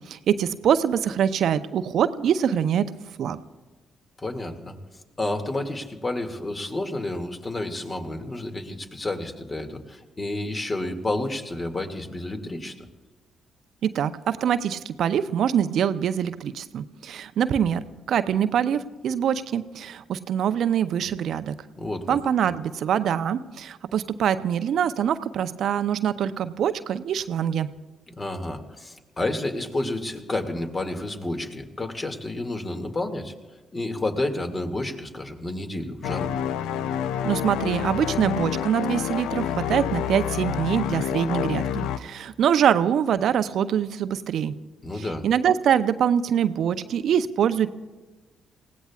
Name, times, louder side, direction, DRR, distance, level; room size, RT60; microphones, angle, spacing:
voice 1, 0.1-2.9 3.2-3.4 13.8-17.8 18.1-21.5 22.1-27.7 37.2-44.5 45.2-47.7, right 9 dB, 60° right, 12 dB, 0.6 m, -24 dB
voice 2, 4.2-4.7 5.2-12.7 21.8-22.2 28.1-33.3 33.7-36.3 44.8-45.3, left 2 dB, 30° left, 5 dB, 2.2 m, -30 dB
sound 1, 36.0-42.0, left 9 dB, 70° left, 0.5 m, -28 dB
28.5 x 17.0 x 2.4 m, 1.2 s
hypercardioid pair, 40°, 0 cm